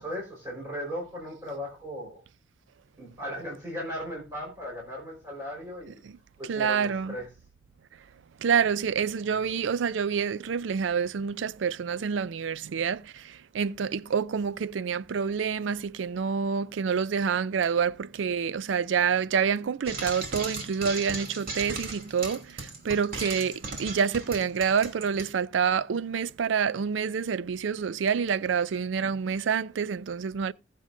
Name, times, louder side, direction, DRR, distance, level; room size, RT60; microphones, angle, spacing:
voice 1, 0.0-2.2 3.0-6.0 6.4-7.3, equal, 20° right, 4.5 m, -37 dB
voice 2, 6.4-7.2 8.4-30.5, right 6 dB, 75° right, 0.4 m, -27 dB
Frying (food), 19.9-25.3, right 3 dB, 50° right, 2.8 m, -36 dB
20.0 x 7.7 x 2.6 m
head